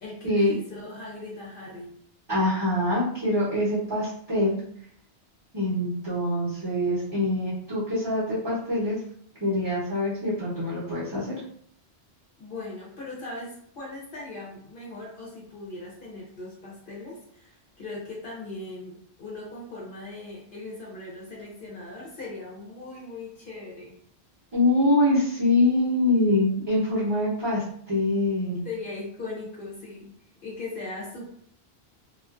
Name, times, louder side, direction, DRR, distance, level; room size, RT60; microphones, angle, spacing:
voice 1, 0.0-1.9 12.4-24.0 28.6-30.1 30.4-31.2, left 2 dB, 60° left, -4 dB, 0.8 m, -39 dB
voice 2, 2.3-4.6 5.5-9.0 9.4-11.3 24.5-28.6, left 1 dB, 25° right, -9 dB, 0.8 m, -24 dB
2.4 x 2.4 x 2.3 m, 0.63 s
omnidirectional pair, 1.1 m